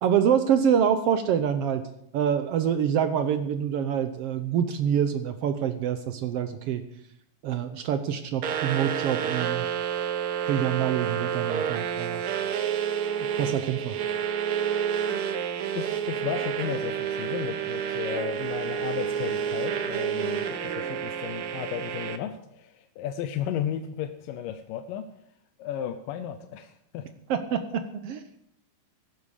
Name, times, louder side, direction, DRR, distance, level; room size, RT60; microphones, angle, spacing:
voice 1, 0.0-1.8 2.1-6.8 7.4-9.7 10.5-12.2 13.3-14.0 27.3-28.2, right 8 dB, 90° right, 9 dB, 1.3 m, -26 dB
sound 1, 8.4-22.2, right 8 dB, 65° right, 1.4 m, -29 dB
voice 2, 15.8-25.1 25.6-27.1, left 10 dB, 85° left, 8 dB, 2.5 m, -34 dB
16.5 x 12.5 x 4.9 m, 0.73 s
omnidirectional pair, 3.8 m